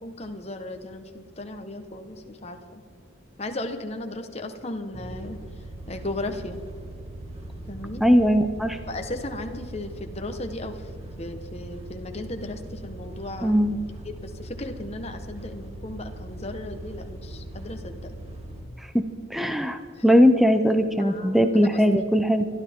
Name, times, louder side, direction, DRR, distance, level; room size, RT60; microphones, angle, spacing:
voice 1, 0.0-2.8 3.4-5.4 5.9-6.6 7.7-8.0 8.9-10.9 11.2-13.7 14.2-18.0 21.0-21.4, left 2 dB, 30° left, 6 dB, 1.3 m, -36 dB
sound 1, 4.9-18.6, right 1 dB, 30° right, 2.3 m, -40 dB
voice 2, 8.0-8.8 13.4-13.8 18.9-19.1 19.3-22.5, equal, ahead, 8 dB, 0.7 m, -20 dB
25.5 x 12.5 x 3.7 m, 2.2 s
head